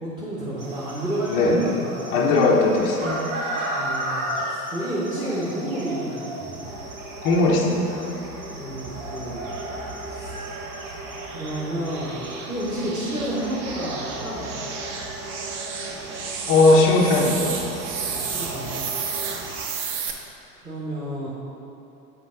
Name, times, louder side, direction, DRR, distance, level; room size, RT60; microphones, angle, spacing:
voice 1, 0.0-2.1 3.6-6.7 8.5-9.5 10.1-10.3 11.3-14.6 18.0-18.9 20.6-21.3, right 1 dB, 10° right, -8 dB, 0.9 m, -31 dB
sound 1, 0.6-19.6, right 1 dB, 55° right, 1.2 m, -36 dB
voice 2, 1.3-1.6 2.1-3.3 7.2-8.1 16.5-17.6, left 2 dB, 20° left, -3 dB, 0.4 m, -19 dB
sound 2, 6.6-19.4, right 2 dB, 75° right, 1.2 m, -39 dB
sound 3, 8.6-20.1, right 5 dB, 35° right, 0.6 m, -34 dB
7.2 x 4.3 x 3.8 m, 2.8 s
figure-of-eight pair, 90°, 48 cm